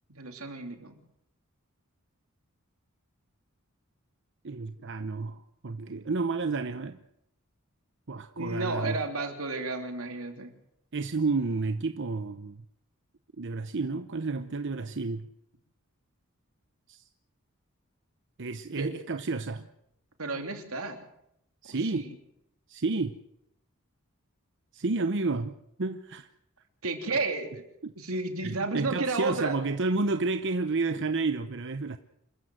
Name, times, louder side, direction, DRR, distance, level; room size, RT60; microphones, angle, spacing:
voice 1, 0.1-1.0 8.4-10.5 18.8-18.9 20.2-21.0 21.7-22.1 26.8-27.6 28.0-29.6, right 3 dB, 85° right, 3.1 m, -32 dB
voice 2, 4.4-7.0 8.1-9.0 10.9-12.6 13.4-15.3 16.9-17.0 18.4-19.7 21.6-22.0 22.7-23.2 24.7-26.3 27.8-27.9 28.4-32.0, right 3 dB, 60° right, 0.8 m, -31 dB
27.0 x 14.5 x 7.7 m
head